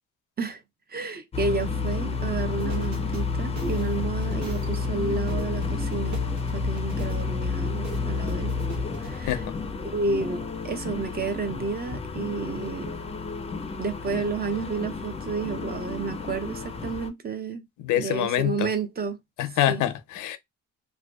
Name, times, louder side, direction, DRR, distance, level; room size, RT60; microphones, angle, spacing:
voice 1, 0.9-6.2 6.5-8.6 9.0-9.3 9.8-12.9 13.8-17.7 17.9-19.2 19.7-19.8, right 4 dB, 30° right, 0.5 m, -31 dB
sound 1, 1.3-17.1, left 4 dB, 20° left, 0.4 m, -30 dB
sound 2, 2.3-9.1, equal, 70° right, 1.0 m, -39 dB
voice 2, 17.8-18.7 19.4-20.4, left 12 dB, 80° left, 0.5 m, -25 dB
2.4 x 2.2 x 2.2 m
cardioid pair, 90°, 30 cm